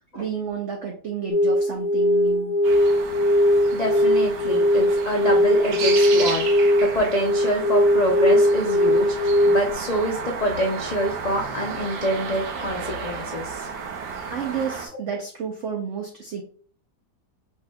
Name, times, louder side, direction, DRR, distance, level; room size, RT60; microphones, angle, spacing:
voice 1, 0.1-2.6 14.3-16.4, right 7 dB, 60° right, 1 dB, 0.9 m, -31 dB
sound 1, 1.3-9.7, equal, 85° left, 1.4 m, -20 dB
sound 2, 2.6-14.9, right 5 dB, 85° right, 1.4 m, -33 dB
voice 2, 3.7-13.7, equal, 70° left, -1 dB, 0.3 m, -26 dB
5.5 x 3.5 x 2.2 m, 0.44 s
omnidirectional pair, 1.8 m